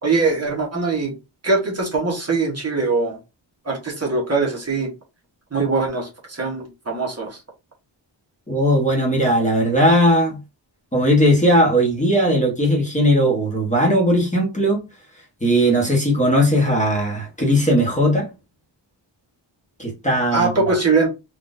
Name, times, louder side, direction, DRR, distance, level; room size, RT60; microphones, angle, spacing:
voice 1, 0.0-1.1 1.4-3.2 3.6-4.9 5.5-7.4 20.3-21.1, right 3 dB, 35° right, 1.0 m, -22 dB
voice 2, 8.5-10.4 10.9-14.8 15.4-18.3 19.8-20.5, equal, 15° left, 1.0 m, -18 dB
3.7 x 2.4 x 2.5 m
wide cardioid pair, 175°, 47 cm